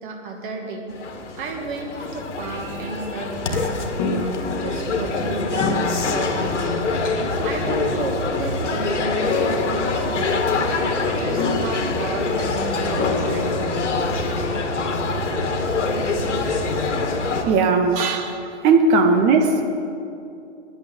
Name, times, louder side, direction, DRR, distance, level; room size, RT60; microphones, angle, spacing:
voice 1, 0.0-0.9 1.4-6.9 7.2-10.5 11.1-13.6 18.3-18.5, right 3 dB, 45° right, 2 dB, 2.4 m, -33 dB
sound 1, 0.9-17.4, left 3 dB, 80° left, 1.9 m, -24 dB
sound 2, 4.0-5.2 5.6-6.8 7.7-8.9 9.3-10.7 11.4-12.6 13.0-14.4, left 3 dB, 20° left, 1.2 m, -29 dB
voice 2, 17.3-19.8, right 3 dB, 20° right, 6 dB, 0.6 m, -18 dB
10.5 x 9.4 x 8.8 m, 2.6 s
hypercardioid pair, 140°, 36 cm